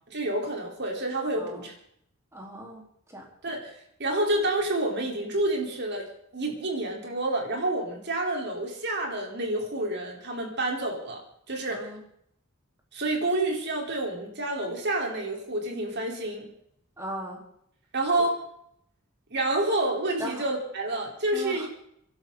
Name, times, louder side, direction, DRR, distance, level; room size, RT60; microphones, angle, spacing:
voice 1, 0.1-1.7 3.4-3.7 4.0-6.0 6.3-11.9 12.9-16.5 17.9-18.4 19.3-21.7, right 1 dB, 55° right, 0 dB, 4.3 m, -28 dB
voice 2, 1.4-1.7 2.3-3.3 11.7-12.0 17.0-17.4 20.2-20.4 21.3-21.7, right 1 dB, 15° right, -2 dB, 4.1 m, -38 dB
24.5 x 12.0 x 4.1 m, 0.71 s
head